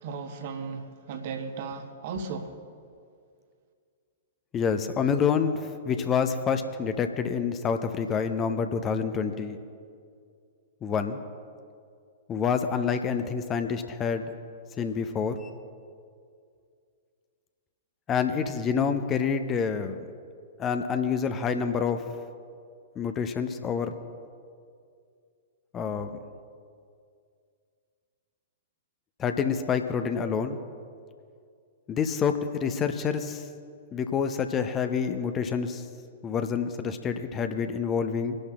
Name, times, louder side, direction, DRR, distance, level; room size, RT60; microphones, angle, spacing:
voice 1, 0.0-2.5, right 5 dB, 45° right, 1.2 m, -36 dB
voice 2, 4.5-9.6 10.8-11.2 12.3-14.3 14.8-15.5 18.1-20.0 20.6-22.0 23.0-23.9 25.7-26.1 29.2-30.6 31.9-33.4 33.9-35.8 36.2-38.4, left 6 dB, 20° left, 0.7 m, -27 dB
24.5 x 11.5 x 2.4 m
figure-of-eight pair, 105°, 0 cm